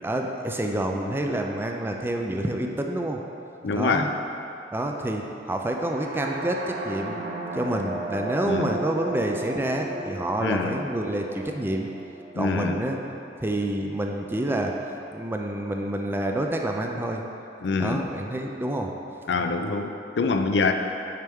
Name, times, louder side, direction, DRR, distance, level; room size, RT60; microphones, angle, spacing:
voice 1, 0.0-3.2 3.7-4.1 4.7-7.2 7.5-11.9 12.4-13.0 13.4-14.8 15.1-17.2 17.8-18.9, right 1 dB, 15° right, 2 dB, 0.4 m, -28 dB
voice 2, 3.6-4.1 8.4-8.7 10.4-10.8 12.3-12.8 17.6-18.0 19.3-20.7, left 4 dB, 75° left, 6 dB, 0.5 m, -25 dB
sound 1, 5.8-13.7, right 2 dB, 45° right, 0.8 m, -35 dB
9.4 x 4.4 x 3.5 m, 2.9 s
head